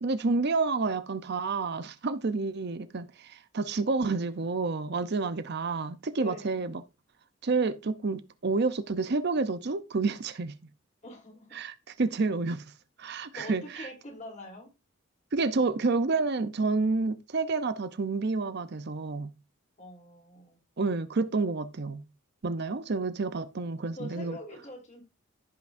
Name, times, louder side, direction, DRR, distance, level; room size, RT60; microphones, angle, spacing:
voice 1, 0.0-6.8 7.4-10.5 11.5-12.7 13.0-13.9 15.3-19.3 20.8-22.0 22.4-24.4, right 3 dB, 50° right, 0.6 m, -29 dB
voice 2, 6.2-6.6 11.0-11.6 13.3-14.7 19.8-20.6 23.9-25.0, left 1 dB, 35° left, 3.2 m, -44 dB
15.0 x 5.9 x 2.6 m
head